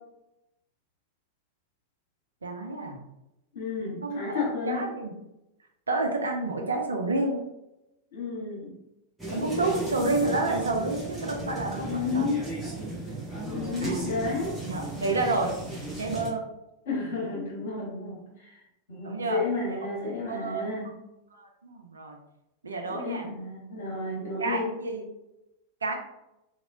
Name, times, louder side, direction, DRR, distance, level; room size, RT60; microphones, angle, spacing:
voice 1, 2.4-3.0 4.0-4.4 4.7-5.2 5.9-7.4 9.3-12.3 13.8-14.1 14.6-15.5 16.0-16.4 19.0-19.4 19.7-19.8 20.3-20.9 21.3-22.2 22.6-23.3 24.4-25.0 25.8-25.9, right 2 dB, 75° right, 3 dB, 0.5 m, -29 dB
voice 2, 3.5-4.8 8.1-8.7 11.8-12.5 13.5-14.5 16.8-18.5 18.9-20.9 22.8-24.7, left 4 dB, 60° left, -4 dB, 1.4 m, -32 dB
sound 1, 9.2-16.3, right 2 dB, 5° right, 1.1 m, -35 dB
2.9 x 2.9 x 2.7 m, 0.91 s
figure-of-eight pair, 90°, 0 cm